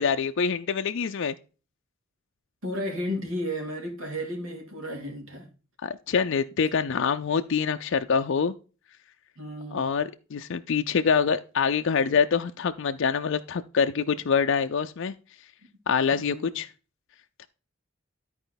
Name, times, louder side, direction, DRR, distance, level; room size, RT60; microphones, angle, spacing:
voice 1, 0.0-1.3 5.8-8.5 9.7-15.1 15.9-16.7, left 6 dB, 60° left, 0.5 m, -25 dB
voice 2, 2.6-5.5 9.4-9.9 16.1-16.6, equal, 75° right, 2.7 m, -33 dB
12.5 x 4.4 x 3.9 m
head